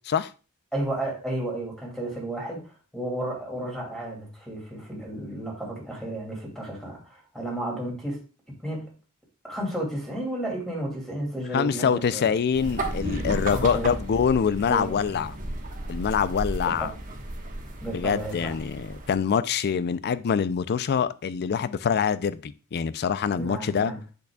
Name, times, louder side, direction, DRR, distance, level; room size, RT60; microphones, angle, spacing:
voice 1, 0.7-8.2 8.6-9.0 9.4-12.3 13.5-13.9 14.7-15.0 16.6-17.0 17.8-18.6 23.4-24.0, right 1 dB, ahead, -2 dB, 2.4 m, -32 dB
voice 2, 11.5-15.3 15.9-16.9 17.9-23.9, left 7 dB, 45° left, 15 dB, 0.4 m, -25 dB
sound 1, 12.5-19.1, right 1 dB, 35° right, 1.2 m, -34 dB
8.1 x 6.6 x 2.3 m, 0.34 s
head